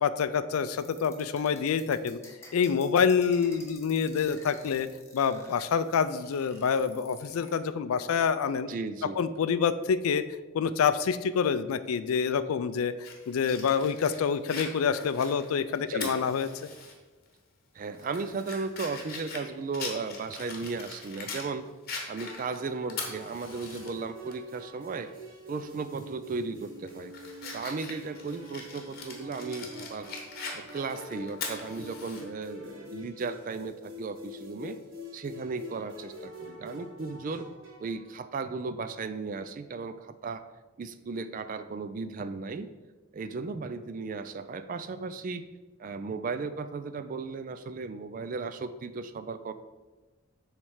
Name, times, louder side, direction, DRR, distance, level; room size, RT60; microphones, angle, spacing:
voice 1, 0.0-2.2 2.5-4.9 5.1-8.7 9.2-10.2 10.5-12.9 13.3-16.5, left 6 dB, 85° left, 13 dB, 0.4 m, -27 dB
sound 1, 0.8-7.6, left 2 dB, 10° left, 0.8 m, -51 dB
voice 2, 8.7-9.2 15.9-16.1 17.7-21.6 22.1-25.1 25.5-27.2 27.5-30.1 30.5-34.8 35.1-37.5 37.8-40.4 40.8-42.7 43.1-45.5 45.8-49.5, right 4 dB, 40° right, 11 dB, 0.3 m, -35 dB
Fire, 13.0-16.9 17.3-17.4 17.9-21.5 21.9-23.9 24.3-24.4 25.9-26.1 26.6-32.2, left 4 dB, 45° left, 1.1 m, -41 dB
sound 2, 22.2-38.1, left 1 dB, 65° right, 1.6 m, -46 dB
7.1 x 3.3 x 4.8 m, 1.2 s
head